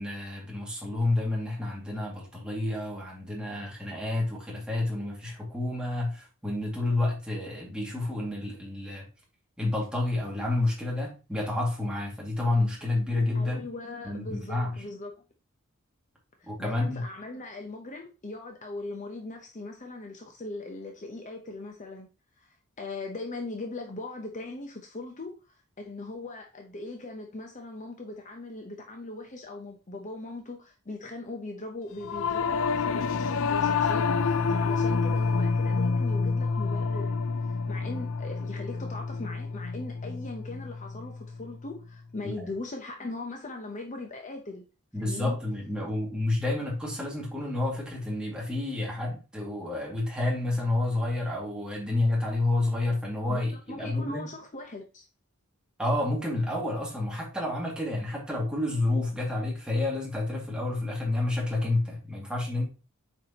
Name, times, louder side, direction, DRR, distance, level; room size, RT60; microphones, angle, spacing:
voice 1, 0.0-9.1 9.6-13.7 14.0-14.7 16.5-17.0 42.2-42.3 44.9-54.3 55.8-62.7, left 2 dB, 5° right, 2.1 m, -29 dB
voice 2, 13.3-15.2 16.4-22.1 22.4-44.6 44.9-45.4 53.3-53.4 53.7-55.1, left 2 dB, 35° left, 0.8 m, -40 dB
Singing / Musical instrument, 32.0-41.6, left 4 dB, 60° left, 0.4 m, -28 dB
7.7 x 4.7 x 2.9 m
head